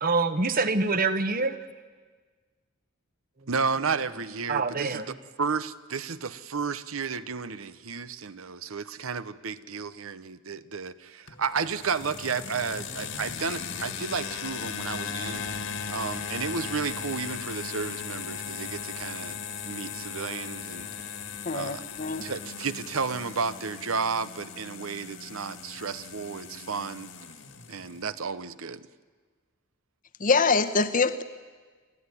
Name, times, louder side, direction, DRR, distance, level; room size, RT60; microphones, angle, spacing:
voice 1, 0.0-1.6 4.5-5.0, right 3 dB, 45° right, 11 dB, 1.2 m, -25 dB
voice 2, 3.5-15.5 15.9-19.4 19.6-20.9 21.5-21.9 22.2-27.1 27.7-28.9, right 5 dB, 85° right, 14 dB, 0.8 m, -32 dB
sound 1, 11.3-28.0, left 6 dB, 65° left, 2.0 m, -37 dB
voice 3, 21.4-22.3 30.2-31.2, left 4 dB, 40° left, 9 dB, 1.0 m, -24 dB
29.0 x 13.5 x 9.8 m, 1.5 s
head